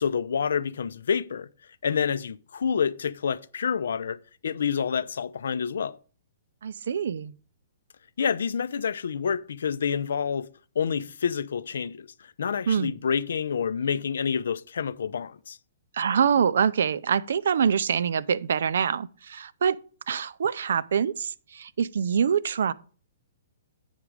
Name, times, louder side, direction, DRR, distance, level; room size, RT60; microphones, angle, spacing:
voice 1, 0.0-1.5 1.8-6.0 8.2-10.5 10.8-15.6, left 6 dB, 80° left, 0.5 m, -28 dB
voice 2, 6.6-7.3 12.7-12.9 15.9-19.8 20.1-22.7, right 7 dB, 65° right, 0.4 m, -25 dB
8.1 x 6.1 x 4.8 m
hypercardioid pair, 175°, 0 cm